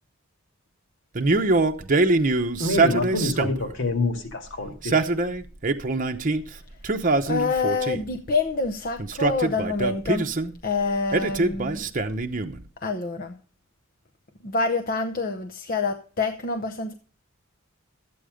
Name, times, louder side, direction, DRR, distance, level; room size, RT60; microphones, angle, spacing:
Male speech man speaking, 1.2-3.7 4.7-6.4 6.8-8.1 9.0-10.5 11.1-12.6, right 2 dB, 40° right, 0.8 m, -23 dB
voice 1, 2.6-5.0, left 2 dB, 60° left, 2.1 m, -26 dB
voice 2, 7.3-10.3 10.6-11.8 12.8-13.4 14.4-16.9, left 3 dB, 45° left, 0.8 m, -26 dB
13.0 x 8.6 x 5.0 m
head